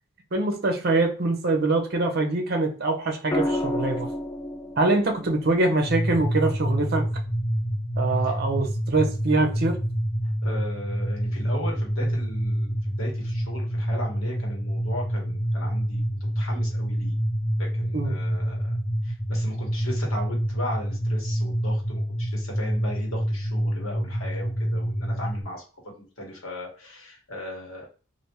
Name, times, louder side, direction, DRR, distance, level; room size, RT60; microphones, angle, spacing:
voice 1, 0.3-4.1 4.8-7.1 8.0-9.8 17.9-18.1, right 2 dB, 50° right, 3 dB, 0.7 m, -24 dB
sound 1, 3.3-7.4 9.1-9.5, left 1 dB, 10° left, 0.3 m, -32 dB
sound 2, 5.9-25.4, equal, 50° left, 1.3 m, -27 dB
voice 2, 10.2-17.1 17.6-18.6 19.0-25.6 26.2-27.9, left 1 dB, 85° left, -1 dB, 1.3 m, -37 dB
3.4 x 2.6 x 2.9 m, 0.36 s
head